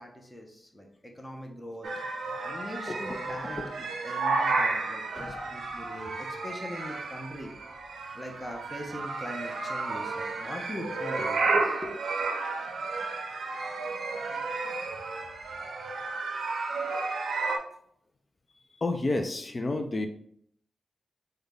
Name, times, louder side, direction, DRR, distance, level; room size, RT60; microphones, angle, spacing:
voice 1, 0.0-1.9 2.4-3.7 4.0-7.5 8.1-12.0, left 1 dB, 15° left, 2 dB, 0.7 m, -41 dB
sound 1, 1.8-17.6, right 3 dB, 85° right, 0.5 m, -32 dB
voice 2, 2.9-3.2 3.6-3.7 5.1-5.5 18.8-20.1, left 2 dB, 35° left, 6 dB, 0.3 m, -31 dB
3.6 x 2.1 x 3.4 m, 0.66 s
wide cardioid pair, 100°, 0 cm